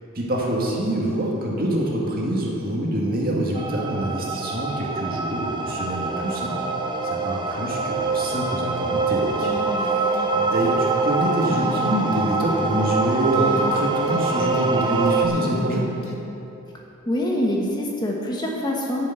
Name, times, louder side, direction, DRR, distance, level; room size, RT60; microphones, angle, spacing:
voice 1, 0.1-6.6 7.0-9.5 9.8-15.9, right 1 dB, 45° right, -3 dB, 2.1 m, -25 dB
sound 1, 3.5-15.3, right 3 dB, 20° right, 0.7 m, -24 dB
sound 2, 9.4-10.3 10.6-11.1 11.4-12.3 13.3-14.3 14.5-16.2, left 2 dB, 70° left, 1.4 m, -34 dB
voice 2, 17.1-19.1, left 1 dB, 20° left, -2 dB, 1.2 m, -24 dB
11.5 x 7.1 x 8.0 m, 2.9 s
head